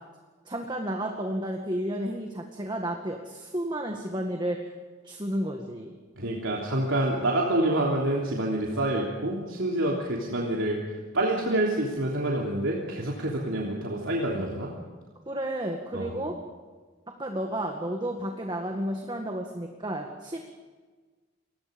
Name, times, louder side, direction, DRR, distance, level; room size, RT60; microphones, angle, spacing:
voice 1, 0.5-4.7 5.0-6.0 15.3-16.3 17.2-20.4, right 1 dB, 25° right, 2 dB, 1.9 m, -32 dB
voice 2, 6.2-10.8 11.1-14.7 15.9-16.2, right 1 dB, 85° right, -2 dB, 3.4 m, -27 dB
29.0 x 21.5 x 5.3 m, 1.4 s
head